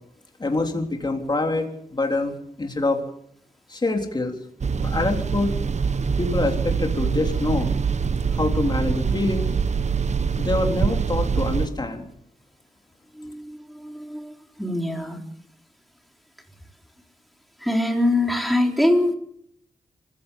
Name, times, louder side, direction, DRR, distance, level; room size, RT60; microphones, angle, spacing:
voice 1, 0.4-2.3 2.6-3.0 3.7-4.4 4.7-5.6 6.2-7.7 8.3-9.5 10.4-12.1, left 2 dB, 30° left, 3 dB, 3.6 m, -25 dB
sound 1, 4.6-11.7, right 5 dB, 50° right, 1.1 m, -24 dB
voice 2, 13.1-14.3 14.6-15.2 17.6-19.1, left 1 dB, ahead, 2 dB, 4.2 m, -23 dB
24.5 x 16.0 x 7.2 m, 0.70 s
wide cardioid pair, 85°, 14 cm